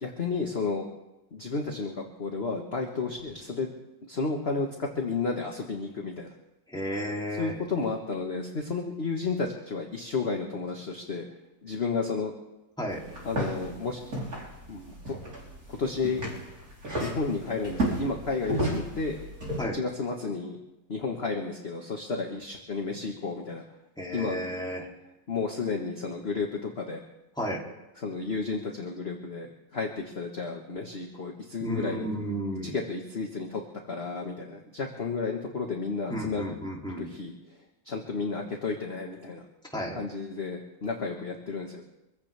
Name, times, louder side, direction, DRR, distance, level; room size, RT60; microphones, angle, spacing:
voice 1, 0.0-0.9 1.3-3.7 4.1-6.3 7.4-11.2 11.6-12.3 13.2-14.0 14.7-15.1 15.7-16.2 17.0-19.2 19.7-20.6 20.9-23.6 24.1-24.4 25.3-27.0 28.0-32.1 32.6-33.6 33.9-36.5 37.0-37.3 37.8-39.4 39.9-41.8, left 4 dB, 35° left, 1 dB, 1.5 m, -32 dB
voice 2, 6.7-7.5 12.8-13.0 19.6-19.8 24.0-24.9 27.4-27.7 31.6-32.7 36.1-37.1 39.7-40.0, equal, ahead, -3 dB, 2.9 m, -32 dB
sound 1, 12.9-19.6, right 1 dB, 50° right, 4.1 m, -33 dB
24.5 x 16.0 x 3.4 m, 0.95 s
omnidirectional pair, 2.0 m